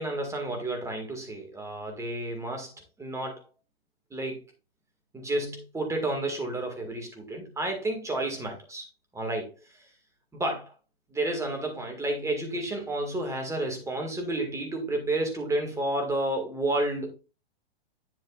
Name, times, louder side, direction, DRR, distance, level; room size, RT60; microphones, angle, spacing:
voice 1, 0.0-2.7 3.0-3.4 4.1-4.4 5.1-8.9 9.1-9.5 10.3-10.7 11.1-17.1, right 1 dB, 10° right, 3 dB, 1.9 m, -31 dB
9.3 x 7.7 x 2.4 m, 0.30 s
hypercardioid pair, 125°, 31 cm